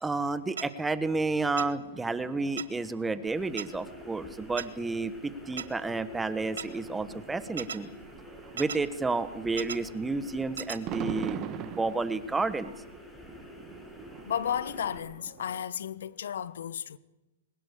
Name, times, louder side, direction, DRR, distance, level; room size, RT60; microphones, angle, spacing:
voice 1, 0.0-7.9 8.5-12.7, right 3 dB, 10° right, 1.3 m, -31 dB
sound 1, 0.6-0.7 1.6-1.7 2.6-2.7 3.6-3.7 4.6-4.7 5.6-5.7 6.6-6.7 7.6-7.8 8.6-8.8 9.6-9.8 10.6-10.8, right 7 dB, 75° right, 1.6 m, -35 dB
sound 2, 1.5-15.7, right 10 dB, 35° right, 1.6 m, -45 dB
sound 3, 3.3-15.0, left 2 dB, 10° left, 6.8 m, -49 dB
voice 2, 14.2-17.0, left 9 dB, 70° left, 1.1 m, -33 dB
22.0 x 19.5 x 8.4 m
hypercardioid pair, 125°, 0 cm